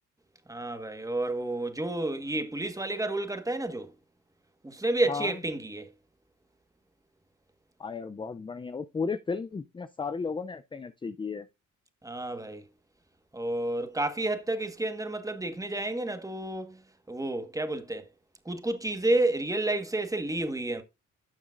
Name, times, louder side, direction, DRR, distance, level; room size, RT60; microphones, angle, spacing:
voice 1, 0.5-3.9 4.6-5.9 12.0-12.6 13.3-16.8 17.1-18.1 18.4-20.8, right 2 dB, 10° right, 1.5 m, -30 dB
voice 2, 7.8-11.5, left 5 dB, 15° left, 0.4 m, -34 dB
12.0 x 7.0 x 2.5 m
cardioid pair, 90°, 30 cm